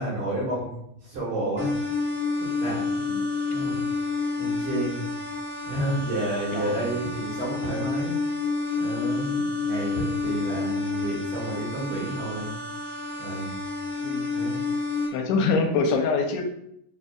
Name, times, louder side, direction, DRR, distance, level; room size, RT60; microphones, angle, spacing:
voice 1, 0.0-1.7 2.6-2.8 3.5-3.8 4.4-5.0 5.6-8.2 8.7-12.5 13.2-13.5 14.3-14.6, right 1 dB, 55° right, -7 dB, 1.9 m, -30 dB
sound 1, 1.6-15.1, left 4 dB, 35° left, 1.0 m, -29 dB
voice 2, 15.1-16.4, left 4 dB, 85° left, 4 dB, 2.1 m, -24 dB
4.7 x 4.0 x 2.3 m, 0.76 s
omnidirectional pair, 3.7 m